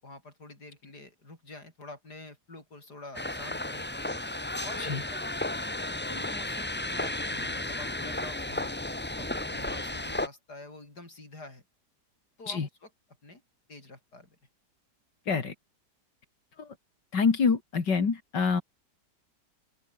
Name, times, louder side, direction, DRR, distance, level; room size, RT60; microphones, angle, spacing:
voice 1, 0.0-3.9 4.6-5.5 6.1-8.8 9.2-11.6 12.4-12.7 13.2-13.4 13.7-14.4, left 2 dB, 70° left, 7.1 m, -47 dB
sound 1, 3.1-10.3, left 1 dB, 10° left, 0.6 m, -33 dB
voice 2, 17.1-18.6, left 5 dB, 90° left, 3.3 m, -26 dB
omnidirectional pair, 1.8 m